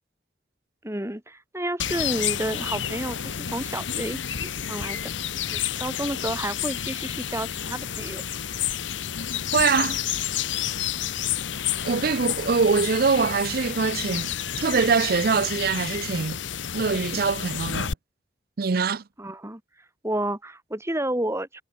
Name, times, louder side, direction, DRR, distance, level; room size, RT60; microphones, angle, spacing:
voice 1, 0.8-5.1 5.5-8.2 19.2-19.6 20.0-21.6, right 1 dB, 15° right, 3.4 m, -31 dB
sound 1, 1.8-17.9, left 9 dB, 90° left, 1.0 m, -30 dB
voice 2, 9.5-10.0 11.8-16.4 16.7-17.9 18.6-19.0, right 5 dB, 55° right, 0.5 m, -23 dB
head